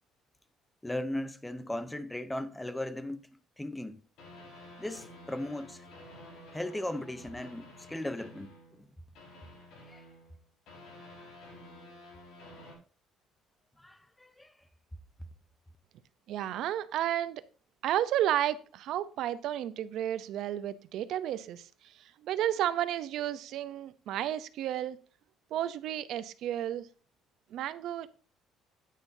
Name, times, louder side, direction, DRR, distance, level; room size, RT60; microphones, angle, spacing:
voice 1, 0.8-3.3 3.6-4.0 4.8-5.8 6.5-8.8 9.9-10.0 13.8-14.5, left 1 dB, 5° left, 0.7 m, -37 dB
sound 1, 4.2-8.9 9.1-12.7, left 1 dB, 70° left, 5.4 m, -51 dB
voice 2, 16.3-17.4 17.8-25.0 25.5-26.9 27.5-28.2, right 12 dB, 65° right, 0.7 m, -32 dB
9.7 x 9.3 x 2.7 m
cardioid pair, 145°, 0 cm